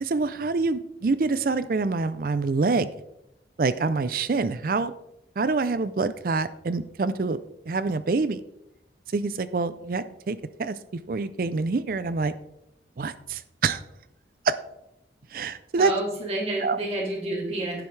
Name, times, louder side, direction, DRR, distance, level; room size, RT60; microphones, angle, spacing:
voice 1, 0.0-2.9 3.6-4.9 5.4-7.4 7.7-8.4 9.1-10.8 11.1-12.3 13.0-13.8 14.4-14.6 15.3-15.9 16.6-16.8, right 4 dB, 50° right, 14 dB, 0.4 m, -26 dB
voice 2, 15.8-17.8, right 1 dB, 35° right, -3 dB, 2.7 m, -29 dB
11.0 x 10.5 x 3.3 m, 0.83 s
head